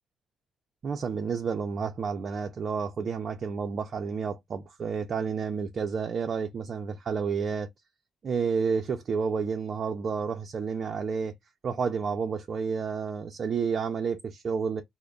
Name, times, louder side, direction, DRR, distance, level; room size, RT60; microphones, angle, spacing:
voice 1, 0.8-7.7 8.2-11.3 11.6-14.8, right 5 dB, 50° right, 0.5 m, -30 dB
3.3 x 2.1 x 3.8 m
cardioid pair, 90°, 0 cm